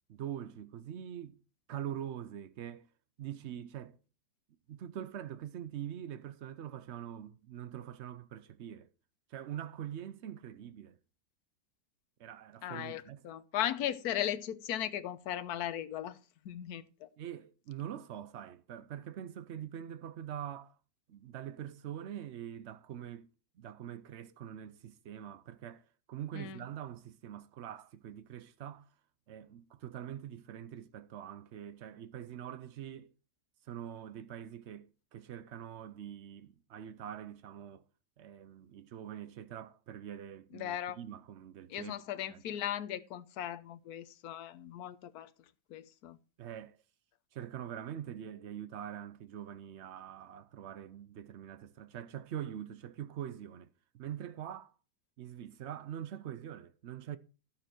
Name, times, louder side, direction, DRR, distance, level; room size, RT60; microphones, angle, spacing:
voice 1, 0.1-1.4 1.7-2.9 3.2-4.0 4.7-8.9 9.3-11.0 12.2-13.2 17.2-20.8 21.1-23.3 23.6-28.9 29.3-33.1 33.6-37.8 38.2-42.0 42.3-42.4 46.4-46.8 47.3-54.7 55.2-57.2, right 10 dB, 90° right, 0.6 m, -44 dB
voice 2, 12.6-16.2 16.4-17.1 26.3-26.6 40.5-41.0 41.7-45.3 45.7-46.2, left 11 dB, 65° left, 1.2 m, -37 dB
13.5 x 6.8 x 4.5 m
omnidirectional pair, 1.9 m